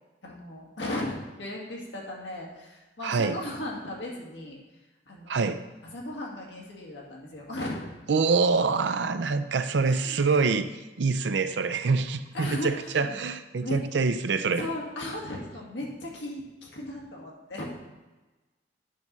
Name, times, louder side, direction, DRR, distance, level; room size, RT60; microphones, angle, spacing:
voice 1, 0.2-4.6 5.1-5.5 5.9-7.9 9.8-10.2 12.3-13.2 13.6-13.8 14.6-17.9, left 1 dB, 85° left, -2 dB, 2.0 m, -36 dB
voice 2, 3.0-3.4 5.3-5.6 8.1-14.7, right 4 dB, 70° right, 10 dB, 0.5 m, -25 dB
9.3 x 4.0 x 6.0 m, 1.2 s
head